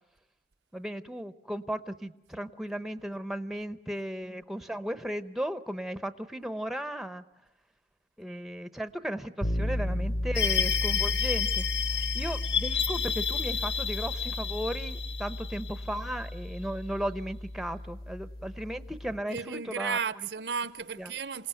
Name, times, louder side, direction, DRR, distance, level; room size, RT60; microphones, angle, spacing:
voice 1, 0.7-7.2 8.2-20.0 21.0-21.1, equal, ahead, 0.8 m, -36 dB
sound 1, 9.4-19.2, left 1 dB, 60° left, 4.4 m, -34 dB
sound 2, 10.3-16.6, left 8 dB, 75° left, 1.5 m, -31 dB
voice 2, 19.3-21.5, right 6 dB, 70° right, 0.8 m, -34 dB
27.5 x 18.0 x 9.2 m
head